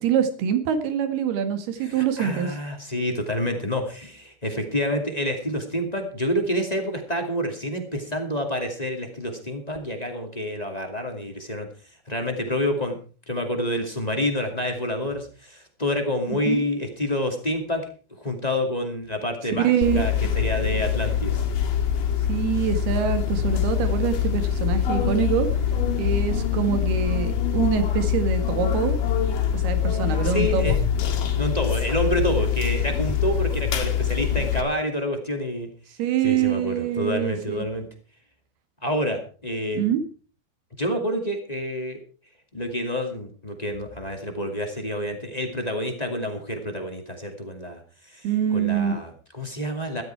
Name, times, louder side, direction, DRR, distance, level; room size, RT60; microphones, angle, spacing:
voice 1, 0.0-2.5 16.3-16.6 19.6-20.0 22.3-25.5 26.0-29.0 29.5-30.8 36.0-37.6 39.7-40.0 48.2-49.0, right 8 dB, 80° right, 8 dB, 3.9 m, -24 dB
voice 2, 1.8-11.7 12.1-12.9 13.3-17.8 18.2-21.4 30.1-30.7 31.3-35.7 36.2-37.9 38.8-39.8 40.8-42.0 42.5-47.8 48.1-50.0, equal, 15° left, 4 dB, 1.8 m, -28 dB
sound 1, 19.8-34.6, left 8 dB, 60° left, 3.3 m, -24 dB
15.5 x 13.0 x 4.7 m, 0.39 s
omnidirectional pair, 4.5 m